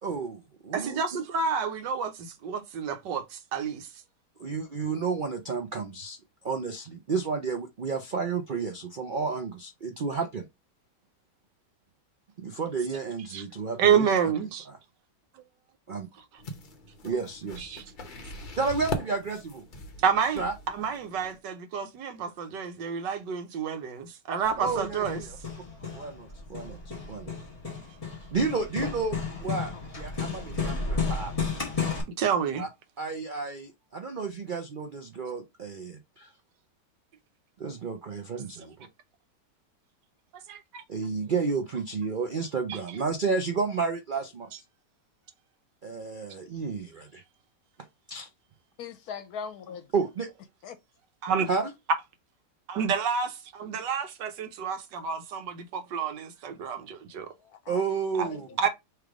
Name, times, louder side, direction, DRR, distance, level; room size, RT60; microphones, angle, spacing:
voice 1, 0.0-1.0 4.4-6.2 6.4-10.5 12.4-14.0 15.9-16.1 17.0-17.8 18.6-19.6 20.4-20.5 24.6-25.0 25.9-26.8 27.1-27.3 28.3-31.3 32.6-32.7 33.0-36.3 37.6-38.9 40.9-44.5 45.8-47.2 48.1-48.3 49.9-50.3 51.5-51.6 57.7-58.5, right 4 dB, 65° right, 0.5 m, -31 dB
voice 2, 0.7-3.9 13.3-13.4 13.8-14.7 17.6-17.8 20.0-25.2 32.2-32.7 40.3-40.8 42.7-42.8 51.2-51.5 52.7-57.3 58.1-58.3 58.6-58.7, right 7 dB, 85° right, 1.5 m, -29 dB
sound 1, 16.4-21.4, left 1 dB, 45° left, 0.7 m, -40 dB
Hammer, 24.5-32.0, left 4 dB, 20° left, 1.3 m, -33 dB
voice 3, 48.8-49.9 50.6-50.8 57.4-57.8 58.1-58.6, left 6 dB, 70° left, 1.1 m, -40 dB
3.3 x 3.2 x 4.8 m
omnidirectional pair, 1.8 m